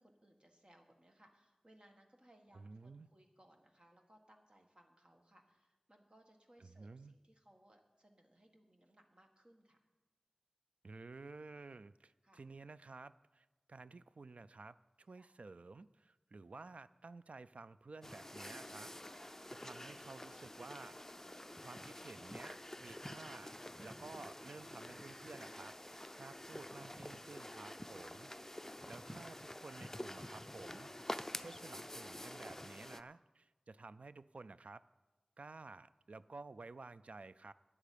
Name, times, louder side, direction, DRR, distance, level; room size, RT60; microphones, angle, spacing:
voice 1, 0.0-9.8 12.2-12.4 15.1-15.3 26.7-26.9 28.6-29.0 33.0-33.1, right 1 dB, 45° right, 3 dB, 1.8 m, -67 dB
voice 2, 2.5-3.1 6.6-7.1 10.8-21.2 21.6-23.5 23.8-33.2 33.7-34.8 35.4-37.5, right 3 dB, 85° right, 15 dB, 0.3 m, -53 dB
sound 1, 18.0-33.0, left 1 dB, 15° left, 0.5 m, -48 dB
9.7 x 8.1 x 8.6 m, 1.1 s
wide cardioid pair, 40°, 2 cm